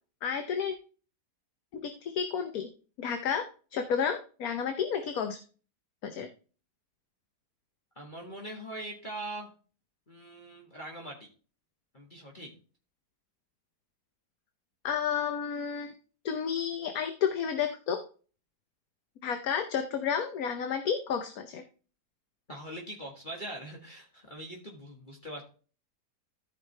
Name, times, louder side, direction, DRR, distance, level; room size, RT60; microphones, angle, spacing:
voice 1, 0.2-0.7 1.7-2.7 3.0-3.4 3.7-5.4 6.0-6.3 14.8-15.9 16.2-18.0 19.2-21.6, left 7 dB, 65° left, 6 dB, 1.3 m, -31 dB
voice 2, 8.0-9.5 10.1-11.3 11.9-12.5 22.5-25.4, right 1 dB, 30° left, -2 dB, 1.8 m, -42 dB
14.0 x 5.2 x 3.3 m, 0.38 s
omnidirectional pair, 1.8 m